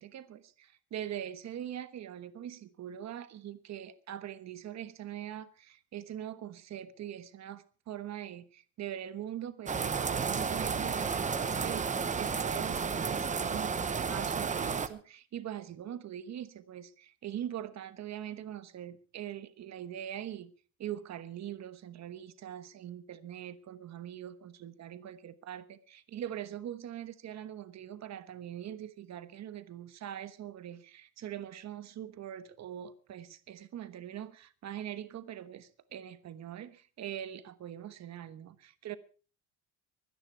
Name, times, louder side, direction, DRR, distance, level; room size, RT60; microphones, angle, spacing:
voice 1, 0.0-11.1 11.4-20.5 20.8-39.0, right 10 dB, 45° right, 1.2 m, -42 dB
sound 1, 9.7-14.9, right 5 dB, 20° right, 0.9 m, -32 dB
23.5 x 10.0 x 4.5 m
cardioid pair, 160°, 38 cm